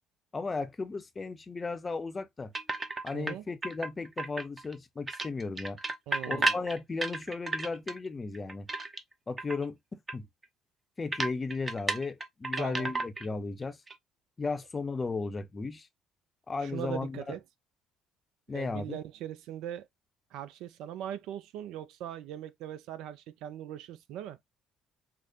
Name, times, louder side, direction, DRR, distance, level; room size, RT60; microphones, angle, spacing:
voice 1, 0.3-2.5 3.0-5.8 6.3-8.7 9.3-10.3 11.0-13.8 14.4-15.9 16.5-17.4 18.5-19.0, left 4 dB, 30° left, 0.6 m, -35 dB
sound 1, 2.5-3.3 3.6-4.7 5.1-8.0 8.3-9.1 9.4-9.7 10.1-10.2 10.4-10.5 11.1-13.4 13.6-13.9, right 3 dB, 25° right, 0.7 m, -33 dB
voice 2, 3.1-3.4 6.1-6.5 12.6-12.9 16.6-17.4 18.5-19.9 20.3-24.4, right 11 dB, 65° right, 0.4 m, -40 dB
4.7 x 2.0 x 2.8 m
figure-of-eight pair, 50°, 0 cm